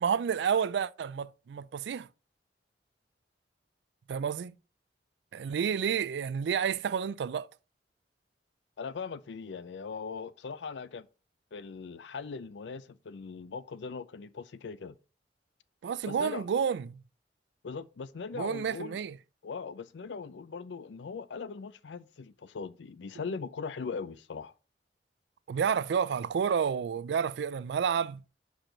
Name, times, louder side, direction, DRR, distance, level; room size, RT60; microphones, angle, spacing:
voice 1, 0.0-2.1 4.1-4.6 5.3-7.5 15.8-17.0 18.3-19.2 25.5-28.2, right 7 dB, 75° right, 0.3 m, -30 dB
voice 2, 8.8-11.1 11.5-15.0 16.0-16.4 17.6-19.0 19.4-24.5, left 5 dB, 85° left, 0.5 m, -40 dB
5.9 x 4.8 x 3.8 m
head